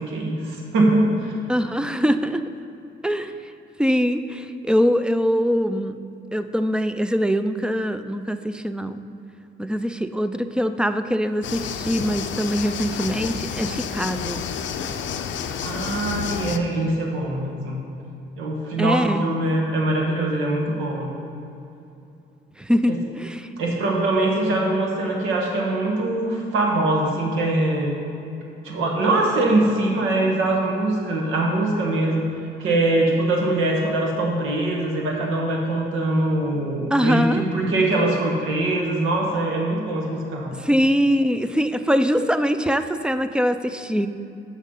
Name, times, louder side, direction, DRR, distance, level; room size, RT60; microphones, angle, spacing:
voice 1, 0.0-1.3 15.6-17.8 18.4-21.1 22.9-23.0 23.6-28.0 28.6-32.2 32.6-40.5, right 2 dB, 90° right, 0 dB, 1.4 m, -22 dB
voice 2, 1.5-2.4 3.0-3.3 3.8-6.0 6.3-9.0 9.6-14.4 18.8-19.3 22.6-23.5 36.9-37.4 40.6-44.1, equal, 5° right, 10 dB, 0.3 m, -22 dB
sound 1, 11.4-16.6, left 7 dB, 70° left, 0.5 m, -30 dB
6.4 x 6.1 x 5.5 m, 2.8 s
cardioid pair, 90°, 20 cm